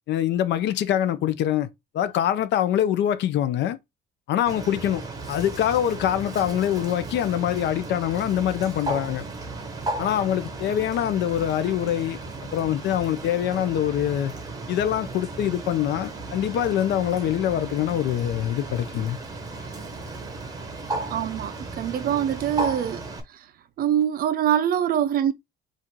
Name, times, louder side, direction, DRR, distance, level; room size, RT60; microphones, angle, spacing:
voice 1, 0.1-1.7 1.9-3.8 4.3-5.0 5.3-9.2 10.0-12.2 12.5-14.3 14.7-19.2, left 11 dB, 60° left, 0.6 m, -24 dB
Bird, 4.5-23.2, right 2 dB, 20° right, 0.8 m, -35 dB
voice 2, 21.1-23.0 23.8-25.3, right 10 dB, 45° right, 0.4 m, -24 dB
4.1 x 2.5 x 4.5 m
cardioid pair, 175°, 21 cm